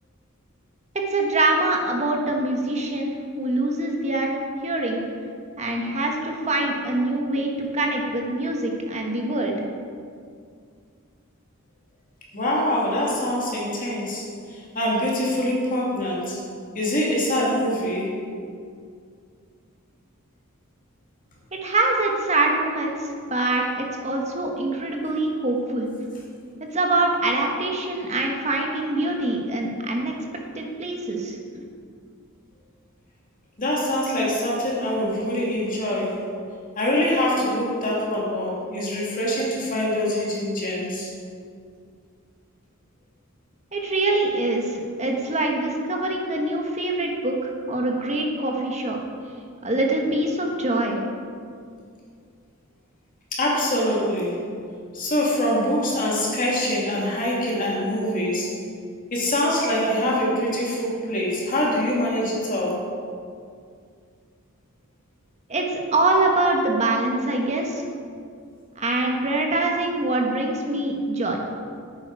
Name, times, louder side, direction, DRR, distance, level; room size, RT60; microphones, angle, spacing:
voice 1, 1.1-4.4 4.6-5.0 5.6-9.5 21.6-23.0 23.3-25.9 26.6-30.1 30.5-31.4 43.7-49.0 49.6-51.0 65.5-65.6 65.9-67.8 68.8-71.4, right 2 dB, 30° right, 1 dB, 1.4 m, -24 dB
voice 2, 12.3-16.4 16.7-18.2 33.6-36.3 36.6-41.1 53.3-54.4 54.9-58.6 59.1-62.9, left 1 dB, 40° left, -4 dB, 2.6 m, -24 dB
11.0 x 9.0 x 4.8 m, 2.2 s
head